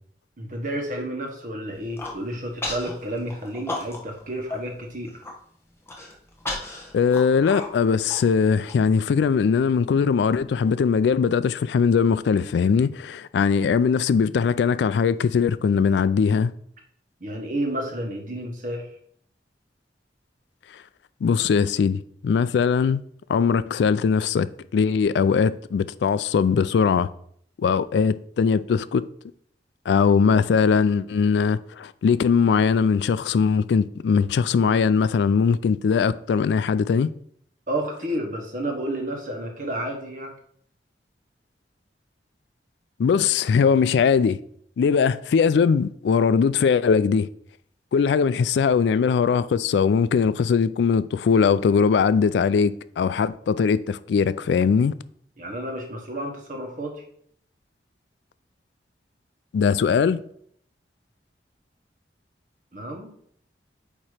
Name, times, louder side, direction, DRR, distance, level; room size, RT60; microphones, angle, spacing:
voice 1, 0.4-5.2 17.2-18.9 37.7-40.3 55.4-57.0 62.7-63.1, right 1 dB, 45° right, 1.3 m, -31 dB
Human voice, 1.7-2.2 2.6-2.9 3.3-4.2 4.5-4.6 5.0-5.3 5.9-8.7, left 2 dB, 15° left, 1.0 m, -33 dB
voice 2, 6.9-16.5 21.2-23.0 23.3-27.1 27.6-29.1 29.9-37.1 43.0-44.4 44.8-47.3 47.9-54.9 59.5-60.2, left 6 dB, 75° left, 0.3 m, -20 dB
8.6 x 3.0 x 4.9 m
head